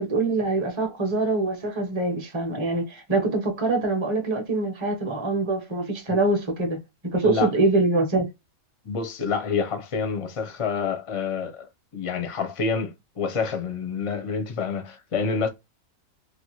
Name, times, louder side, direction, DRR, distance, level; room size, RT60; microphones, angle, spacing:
voice 1, 0.0-6.8 7.1-8.3, right 2 dB, 25° right, 0.8 m, -24 dB
voice 2, 8.8-15.5, left 5 dB, 35° left, 0.5 m, -28 dB
3.0 x 2.3 x 3.0 m
omnidirectional pair, 1.4 m